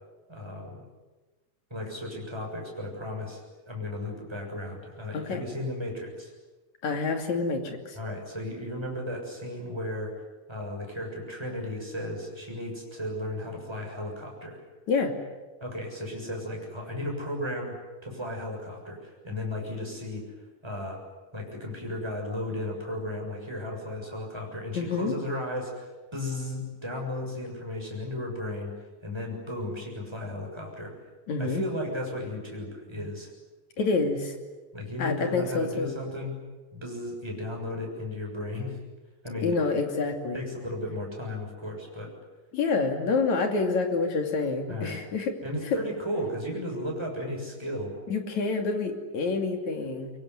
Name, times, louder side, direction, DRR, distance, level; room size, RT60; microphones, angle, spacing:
voice 1, 0.3-0.8 1.7-6.3 7.9-10.1 10.5-14.6 15.6-20.2 20.6-21.0 21.3-28.7 29.0-31.0 31.4-33.3 34.7-36.4 36.7-38.8 39.2-39.6 40.3-42.1 44.7-45.0 45.4-47.9, left 1 dB, 5° right, 0 dB, 6.8 m, -35 dB
voice 2, 5.1-5.4 6.8-8.0 14.9-15.1 24.7-25.1 31.3-31.6 33.0-33.1 33.8-34.4 35.0-36.0 39.4-40.4 42.5-45.4 45.6-45.8 48.1-50.1, left 4 dB, 60° left, 4 dB, 3.8 m, -27 dB
25.0 x 23.5 x 9.6 m, 1.2 s
omnidirectional pair, 3.9 m